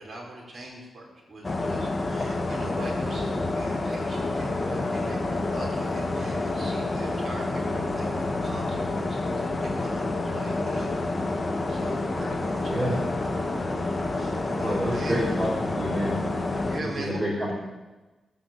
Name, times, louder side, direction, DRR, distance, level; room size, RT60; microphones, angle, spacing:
voice 1, 0.0-13.0 13.6-13.8 14.1-15.2 16.6-17.5, right 2 dB, 40° right, -3 dB, 3.9 m, -41 dB
sound 1, 1.4-16.8, left 2 dB, 30° left, 1.6 m, -28 dB
voice 2, 14.6-16.2 17.0-17.5, equal, 20° right, -6 dB, 4.8 m, -28 dB
17.5 x 7.3 x 7.3 m, 1.2 s
cardioid pair, 80°, 0 cm